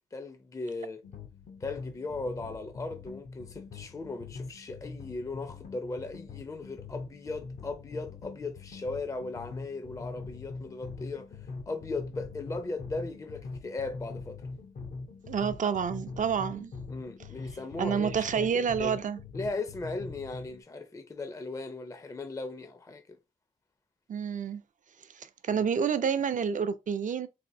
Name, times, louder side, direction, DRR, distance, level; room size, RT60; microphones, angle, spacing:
voice 1, 0.1-1.0 1.6-14.4 16.9-19.0 19.3-23.2 25.5-25.7, left 3 dB, 25° left, 0.4 m, -38 dB
sound 1, 1.0-20.6, left 4 dB, 75° left, 0.7 m, -43 dB
voice 2, 15.3-16.7 17.8-19.2 24.1-24.6 25.1-27.3, right 7 dB, 65° right, 0.4 m, -29 dB
4.2 x 2.6 x 2.6 m
wide cardioid pair, 85°, 14 cm